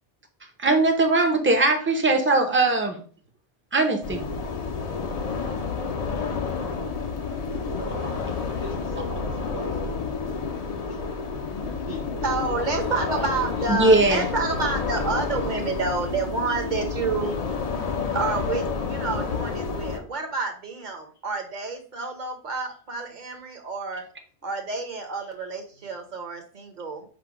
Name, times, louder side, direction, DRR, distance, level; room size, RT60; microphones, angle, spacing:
voice 1, 0.6-3.0 3.7-4.2 9.1-9.2 13.7-14.2, right 2 dB, 15° right, 5 dB, 0.5 m, -20 dB
sound 1, 4.0-20.0, left 5 dB, 50° left, 0.5 m, -30 dB
voice 2, 7.0-11.3 11.6-13.7 17.2-17.3 25.4-25.5, left 1 dB, 80° left, -3 dB, 2.2 m, -40 dB
voice 3, 12.2-17.3 18.1-24.0 24.4-27.0, right 4 dB, 45° right, 3 dB, 0.8 m, -29 dB
5.0 x 2.1 x 4.8 m, 0.43 s
omnidirectional pair, 1.2 m